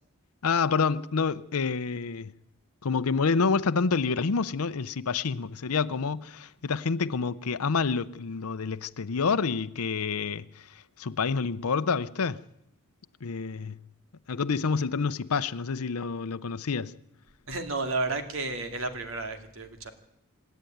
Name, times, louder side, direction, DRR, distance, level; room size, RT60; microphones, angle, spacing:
voice 1, 0.4-2.3 2.8-12.4 13.2-13.8 14.3-16.9, left 5 dB, 85° left, 0.7 m, -28 dB
voice 2, 17.5-19.9, right 3 dB, 65° right, 2.4 m, -32 dB
27.0 x 10.5 x 9.3 m
head